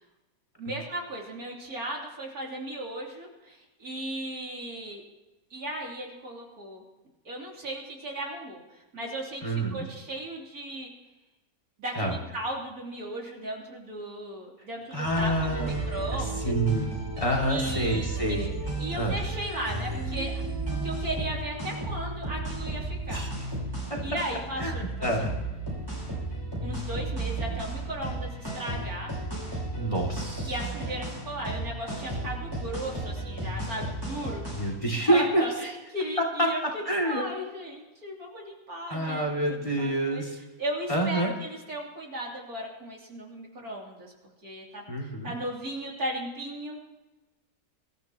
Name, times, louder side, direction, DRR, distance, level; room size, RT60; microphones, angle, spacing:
voice 1, 0.6-5.0 5.5-6.8 7.3-10.9 11.8-16.5 17.4-18.5 18.8-20.4 20.8-23.3 24.0-25.3 26.6-29.1 30.5-34.4 34.9-40.2 40.6-44.1 44.4-46.8, right 1 dB, 60° right, -2 dB, 3.5 m, -36 dB
voice 2, 9.4-9.9 11.9-12.2 14.9-15.9 16.1-16.9 17.2-18.5 19.0-19.2 23.1-23.3 24.6-25.3 29.8-30.5 34.5-35.4 36.4-36.5 36.9-37.2 38.9-40.4 40.9-41.3 44.9-45.3, right 1 dB, 20° left, 1 dB, 2.5 m, -27 dB
sound 1, 15.0-34.9, right 2 dB, 15° right, 6.1 m, -34 dB
25.0 x 13.5 x 3.0 m, 1.1 s
omnidirectional pair, 1.8 m